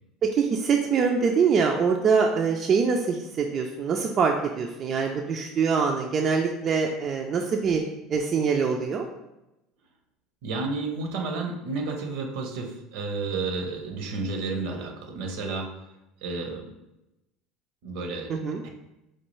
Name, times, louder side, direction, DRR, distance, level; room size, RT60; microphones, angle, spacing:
voice 1, 0.2-7.8 8.1-9.1 18.3-18.6, right 5 dB, 40° right, 1 dB, 0.3 m, -24 dB
voice 2, 10.4-15.7 16.2-16.7 17.8-18.3 18.6-18.7, right 3 dB, 75° right, 3 dB, 0.7 m, -31 dB
4.3 x 2.3 x 3.1 m, 0.93 s
supercardioid pair, 105°, 0 cm